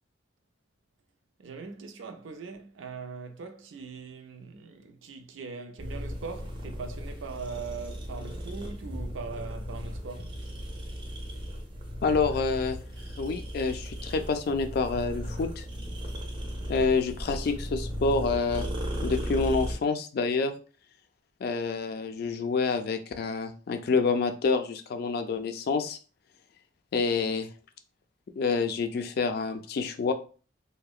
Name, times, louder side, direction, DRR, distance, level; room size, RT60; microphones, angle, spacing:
voice 1, 1.4-10.4, right 5 dB, 85° right, 0.4 m, -41 dB
sound 1, 5.8-19.8, equal, 25° right, 0.5 m, -36 dB
voice 2, 12.0-12.8 13.2-15.6 16.7-18.7 19.0-20.5 21.4-26.0 26.9-27.5 28.4-30.1, left 4 dB, 55° left, 0.3 m, -27 dB
2.7 x 2.1 x 2.3 m
head